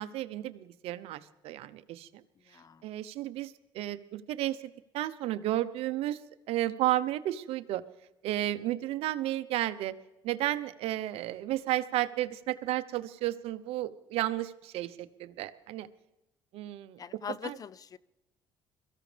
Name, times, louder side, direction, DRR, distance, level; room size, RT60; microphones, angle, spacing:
voice 1, 0.0-2.2 2.8-4.6 4.9-6.2 6.5-7.8 8.2-9.9 10.2-15.9 16.5-17.0 17.4-17.6, right 14 dB, 70° right, 13 dB, 0.8 m, -32 dB
voice 2, 2.5-2.9 17.0-18.0, left 7 dB, 35° left, 19 dB, 0.5 m, -41 dB
22.5 x 14.5 x 3.4 m, 0.96 s
supercardioid pair, 95°, 10 cm